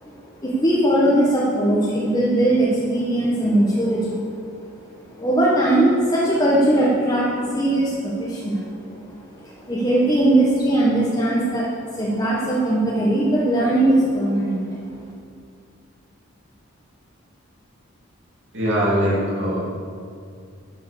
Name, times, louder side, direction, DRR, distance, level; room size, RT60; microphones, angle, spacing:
voice 1, 0.0-15.1, right 1 dB, 20° left, -7 dB, 1.5 m, -20 dB
voice 2, 18.5-19.6, equal, 60° right, -7 dB, 2.7 m, -21 dB
11.5 x 7.7 x 6.8 m, 2.3 s
head